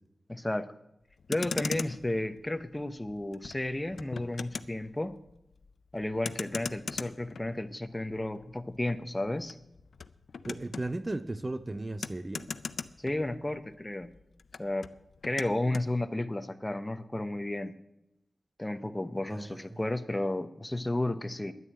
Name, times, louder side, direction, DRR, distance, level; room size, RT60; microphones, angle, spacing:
voice 1, 0.3-0.7 1.3-5.2 5.9-9.6 13.0-14.1 14.6-14.9 15.2-17.7 18.6-21.5, left 1 dB, 15° left, 0.9 m, -33 dB
Motor vehicle (road), 1.1-13.7 14.0-15.9, left 5 dB, 80° left, 0.5 m, -41 dB
voice 2, 10.5-12.5 19.3-19.8, right 2 dB, 30° right, 0.6 m, -36 dB
11.0 x 9.7 x 8.6 m
wide cardioid pair, 75°, 0 cm